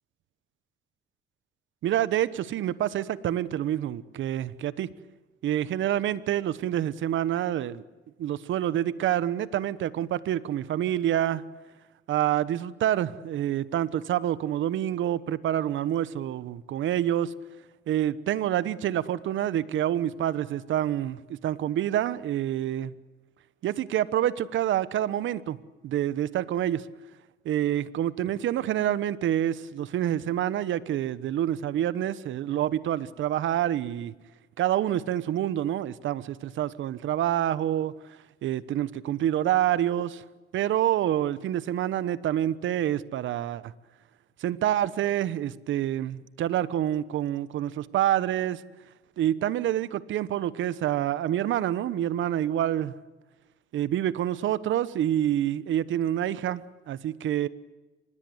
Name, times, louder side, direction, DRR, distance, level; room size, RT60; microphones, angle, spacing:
voice 1, 1.8-4.9 5.4-7.8 8.2-11.4 12.1-17.3 17.9-22.9 23.6-25.6 25.8-26.9 27.4-34.1 34.6-37.9 38.4-40.2 40.5-43.7 44.4-48.6 49.2-52.9 53.7-57.5, right 11 dB, 75° right, 17 dB, 1.1 m, -27 dB
25.0 x 21.0 x 8.0 m, 1.2 s
cardioid pair, 90°, 20 cm